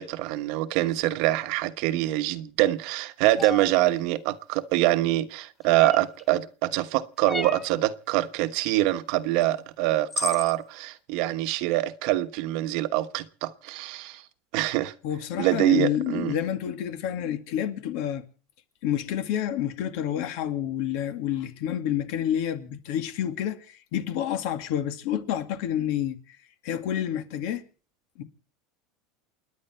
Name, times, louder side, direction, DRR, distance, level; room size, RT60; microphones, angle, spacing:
voice 1, 0.0-14.2 14.5-14.9 15.4-16.4, right 16 dB, 60° right, 1.1 m, -25 dB
sound 1, 3.4-3.7 5.8-6.2 7.3-7.7 9.4-9.5 10.1-10.5, left 3 dB, 15° left, 0.7 m, -32 dB
voice 2, 15.0-18.2 18.8-26.4 26.6-27.6 28.2-28.3, left 10 dB, 60° left, 2.2 m, -29 dB
29.5 x 10.5 x 4.4 m
supercardioid pair, 140°, 0 cm